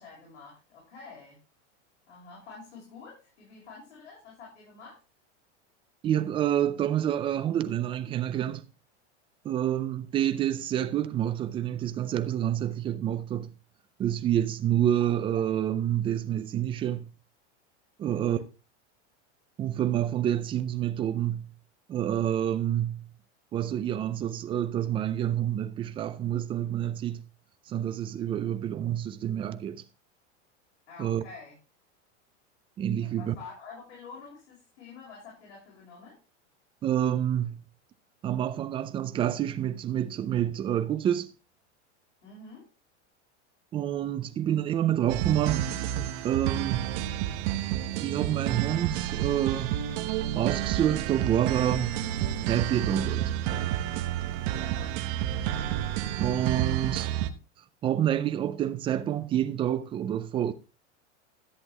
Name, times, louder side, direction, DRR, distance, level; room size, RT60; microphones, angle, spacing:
voice 1, 0.0-1.4 2.1-5.0 18.0-18.5 30.9-31.6 33.0-36.2 42.2-42.7 54.5-55.0, left 4 dB, 85° left, 6.8 m, -48 dB
voice 2, 6.0-8.6 9.4-13.5 14.0-17.1 18.0-18.4 19.6-21.5 21.9-23.0 23.5-27.2 27.7-29.8 31.0-31.2 32.8-33.3 36.8-37.6 38.2-41.3 43.7-45.7 46.2-46.9 48.0-49.8 50.4-52.0 52.5-53.3 56.0-57.1 57.8-60.5, right 11 dB, 15° right, 0.4 m, -28 dB
sound 1, 45.1-57.3, right 12 dB, 45° right, 1.1 m, -30 dB
13.5 x 8.0 x 3.5 m
supercardioid pair, 160°, 35 cm